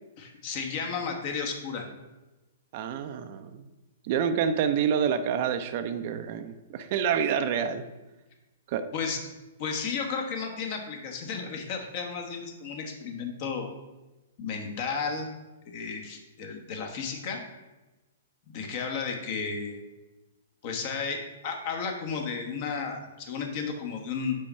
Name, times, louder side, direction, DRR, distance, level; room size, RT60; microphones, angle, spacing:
voice 1, 0.2-1.9 8.9-9.2 9.6-13.7 14.4-15.3 15.6-17.4 18.5-19.8 20.6-24.4, left 5 dB, 45° left, 3 dB, 1.2 m, -33 dB
voice 2, 2.7-3.7 4.0-7.8 8.7-8.9, right 7 dB, 50° right, 9 dB, 0.5 m, -28 dB
5.4 x 4.5 x 5.4 m, 1.1 s
hypercardioid pair, 125°, 0 cm